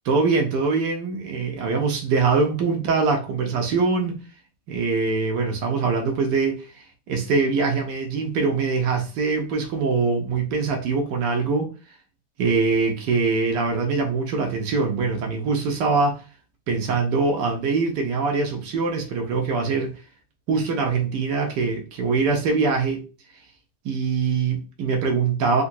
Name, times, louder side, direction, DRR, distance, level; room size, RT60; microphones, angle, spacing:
voice 1, 0.1-4.2 4.7-6.7 7.1-11.7 12.4-16.2 16.7-19.9 20.5-23.0 23.8-25.6, right 4 dB, 80° right, 1.2 m, -23 dB
3.8 x 2.2 x 2.6 m
omnidirectional pair, 1.8 m